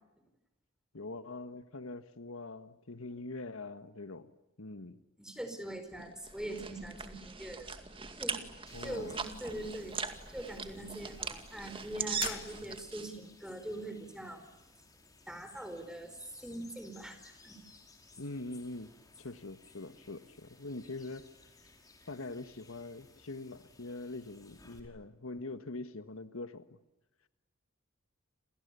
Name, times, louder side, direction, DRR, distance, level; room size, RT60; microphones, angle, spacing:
voice 1, 0.9-4.3 4.6-5.0 8.7-9.1 18.2-18.9 19.2-21.3 22.1-26.8, left 2 dB, 80° left, 11 dB, 1.5 m, -43 dB
voice 2, 5.2-7.7 8.2-8.4 8.8-10.0 10.3-14.4 15.3-16.1 16.4-17.6, right 1 dB, 5° right, 8 dB, 4.6 m, -42 dB
sound 1, 6.0-13.1, right 5 dB, 25° right, 2.2 m, -40 dB
sound 2, 8.7-24.8, left 3 dB, 20° left, 4.9 m, -59 dB
sound 3, 12.1-13.2, left 10 dB, 55° left, 1.7 m, -44 dB
29.5 x 28.0 x 6.9 m, 0.98 s
head